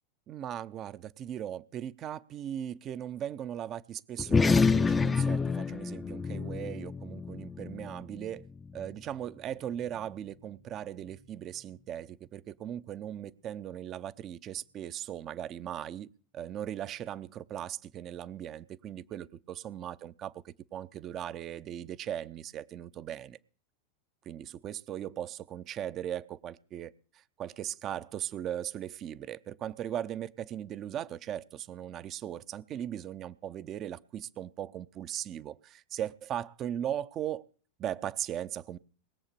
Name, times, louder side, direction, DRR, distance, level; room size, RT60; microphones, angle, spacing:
voice 1, 0.3-8.4 8.7-23.4 24.3-26.9 27.4-37.4 37.8-38.8, right 10 dB, 40° right, 0.6 m, -38 dB
sound 1, 4.2-9.0, left 5 dB, 15° left, 0.6 m, -28 dB
20.0 x 7.3 x 6.8 m
hypercardioid pair, 90°, 0 cm